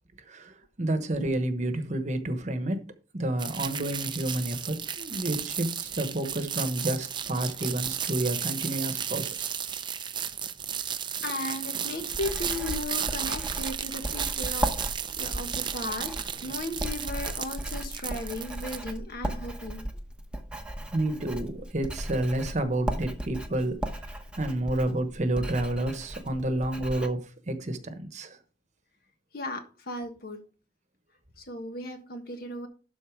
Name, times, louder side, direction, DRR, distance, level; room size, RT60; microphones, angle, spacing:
voice 1, 0.3-2.8 3.1-9.5 20.9-23.8 24.4-28.4, right 1 dB, 40° right, 1.1 m, -30 dB
sound 1, 3.4-18.8, right 8 dB, 25° right, 0.5 m, -34 dB
voice 2, 11.2-14.7 15.2-16.1 16.4-19.8 29.3-30.4 31.4-32.7, left 1 dB, 55° left, 1.6 m, -36 dB
Writing, 12.0-27.1, right 1 dB, 5° right, 1.0 m, -36 dB
12.0 x 4.1 x 4.8 m
head